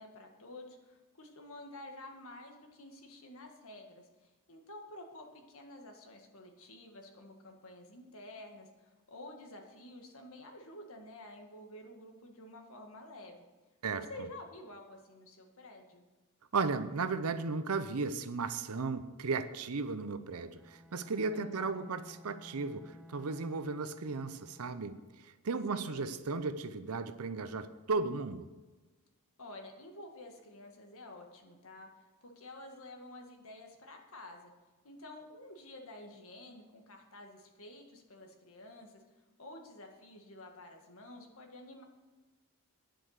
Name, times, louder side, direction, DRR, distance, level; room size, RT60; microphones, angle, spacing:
voice 1, 0.0-13.5 13.9-16.0 21.3-21.9 25.7-26.2 29.4-34.5 34.8-39.0 39.4-41.8, left 1 dB, 65° left, 3 dB, 1.8 m, -50 dB
voice 2, 16.5-28.5, right 4 dB, 75° right, 12 dB, 0.7 m, -35 dB
Bowed string instrument, 20.6-24.9, left 1 dB, ahead, 0.6 m, -55 dB
10.0 x 7.8 x 6.6 m, 1.2 s
head